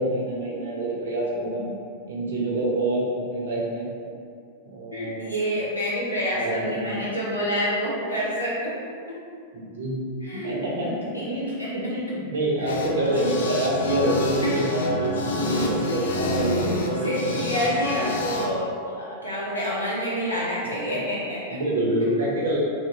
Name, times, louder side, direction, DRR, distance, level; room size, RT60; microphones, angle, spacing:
voice 1, 0.0-1.7 2.1-3.9 4.6-5.2 6.3-7.0 9.5-10.0 10.3-10.9 11.3-17.8 20.9-21.0 21.5-22.6, right 1 dB, 65° right, -3 dB, 0.6 m, -26 dB
voice 2, 4.9-8.8 10.2-10.6 10.8-11.3 11.6-11.7 12.6-12.7 13.2-13.3 14.4-14.5 17.0-21.6, equal, 85° left, -8 dB, 0.8 m, -28 dB
sound 1, 12.7-18.5, left 2 dB, 65° left, 0.3 m, -28 dB
2.8 x 2.5 x 2.8 m, 2.4 s
figure-of-eight pair, 90°, 0 cm